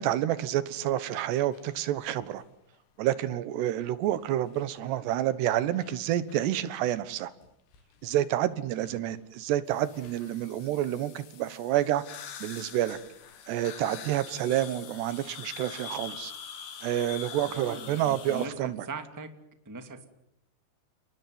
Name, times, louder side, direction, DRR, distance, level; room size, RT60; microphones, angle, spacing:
voice 1, 0.0-2.4 3.0-7.3 8.0-12.0 12.4-13.0 13.5-16.3 16.8-18.8, right 12 dB, 70° right, 15 dB, 3.2 m, -29 dB
sound 1, 1.5-2.4 3.2-3.3 3.8-4.9 5.3-6.5 7.1-7.2 7.4-7.5 7.7-8.4 8.8-8.9 9.7-18.5, left 8 dB, 70° left, 4.6 m, -45 dB
voice 2, 17.4-19.3 19.6-20.0, right 3 dB, 10° right, 8 dB, 1.0 m, -40 dB
29.5 x 20.0 x 9.5 m, 0.81 s
omnidirectional pair, 5.3 m